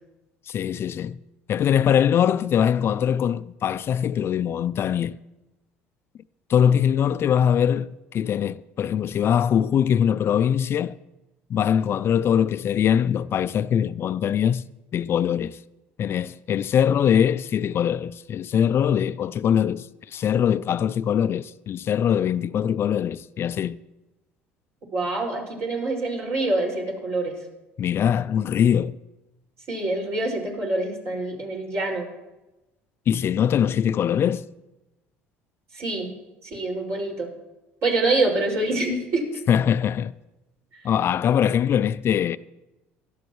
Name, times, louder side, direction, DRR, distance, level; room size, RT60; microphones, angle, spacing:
voice 1, 0.5-1.2 1.5-5.2 6.5-11.0 11.5-14.7 14.9-15.6 16.0-23.8 27.8-29.0 33.1-34.5 39.5-40.1 40.8-42.4, left 9 dB, 45° left, 0.4 m, -22 dB
voice 2, 24.9-27.4 29.7-32.1 35.7-36.1 36.4-37.3 37.8-39.2 40.7-40.8, right 2 dB, 60° right, 5.6 m, -26 dB
18.0 x 13.0 x 3.1 m
hypercardioid pair, 70°, 6 cm